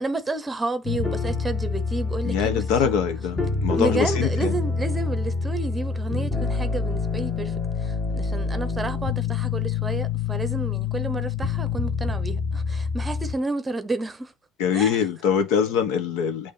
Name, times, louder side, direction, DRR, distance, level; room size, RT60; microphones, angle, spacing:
voice 1, 0.0-2.9 3.7-14.3 14.7-15.0, right 2 dB, 15° right, 0.9 m, -31 dB
sound 1, 0.8-13.4, left 5 dB, 20° left, 1.7 m, -27 dB
voice 2, 2.2-4.6 14.6-16.5, left 7 dB, 80° left, 1.3 m, -23 dB
8.6 x 3.3 x 4.2 m
cardioid pair, 115°, 0 cm